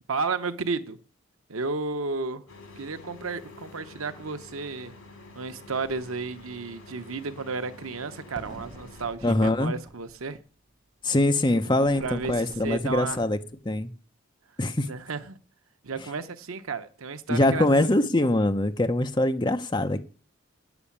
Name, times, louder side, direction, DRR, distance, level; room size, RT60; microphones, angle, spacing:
voice 1, 0.1-1.0 1.5-2.4 2.8-4.9 5.4-10.4 11.6-11.7 12.0-13.2 14.9-15.4 15.8-17.7, right 4 dB, 80° right, 0.9 m, -32 dB
sound 1, 2.5-9.1, left 3 dB, 85° left, 2.5 m, -48 dB
sound 2, 5.8-6.1 6.4-6.5 8.4-10.2 11.8-13.6, right 1 dB, 20° right, 0.9 m, -46 dB
voice 2, 9.2-9.7 11.0-13.4 13.6-13.9 14.6-14.9 17.3-20.0, left 1 dB, 20° left, 0.7 m, -23 dB
9.1 x 7.0 x 8.5 m
head